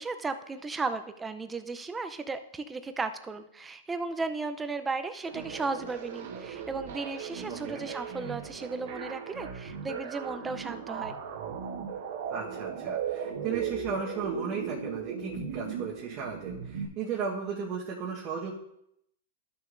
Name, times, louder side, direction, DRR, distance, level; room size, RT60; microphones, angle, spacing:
voice 1, 0.0-11.1, right 3 dB, 10° right, 9 dB, 0.5 m, -35 dB
sound 1, 5.2-16.9, right 7 dB, 65° right, 1.2 m, -37 dB
voice 2, 7.5-7.8 12.3-18.5, right 6 dB, 40° right, -3 dB, 1.1 m, -35 dB
13.0 x 6.3 x 2.5 m, 0.77 s
hypercardioid pair, 140°, 0 cm